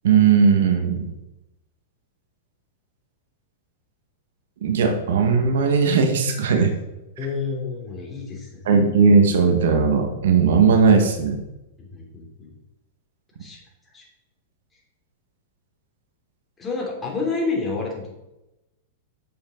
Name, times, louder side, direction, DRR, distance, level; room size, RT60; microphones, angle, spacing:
voice 1, 0.0-1.1 4.6-6.7 8.6-11.3, right 5 dB, 75° right, 5 dB, 1.5 m, -17 dB
voice 2, 7.2-8.6 11.8-12.5 13.4-13.6 13.9-14.0 16.6-18.2, left 4 dB, 15° left, -2 dB, 3.1 m, -29 dB
8.6 x 7.2 x 3.9 m, 0.95 s
hypercardioid pair, 120°, 0 cm